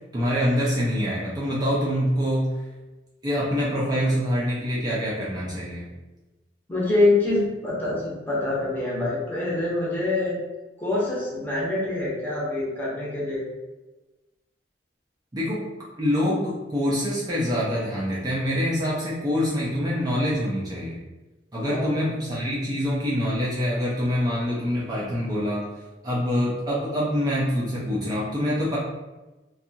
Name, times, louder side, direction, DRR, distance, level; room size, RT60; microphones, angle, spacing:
voice 1, 0.1-2.5 3.2-5.9 15.3-15.6 15.9-21.0 21.5-25.6 26.0-28.8, equal, 20° right, -7 dB, 0.5 m, -25 dB
voice 2, 6.7-10.4 10.8-13.4 21.6-21.9, left 2 dB, 10° left, -6 dB, 0.7 m, -25 dB
2.6 x 2.3 x 2.7 m, 1.1 s
head